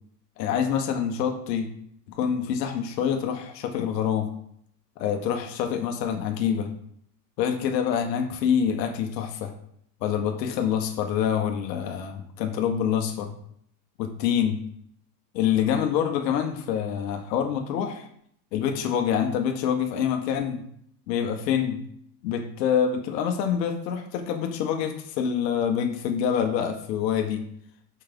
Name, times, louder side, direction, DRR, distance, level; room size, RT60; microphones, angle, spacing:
voice 1, 0.4-1.7 2.1-4.3 5.0-6.7 7.4-9.5 10.0-13.4 14.0-14.6 15.3-18.1 18.5-20.6 21.1-21.8 22.2-27.4, left 8 dB, 90° left, 4 dB, 1.5 m, -26 dB
6.1 x 5.5 x 5.3 m, 0.67 s
supercardioid pair, 180°, 49 cm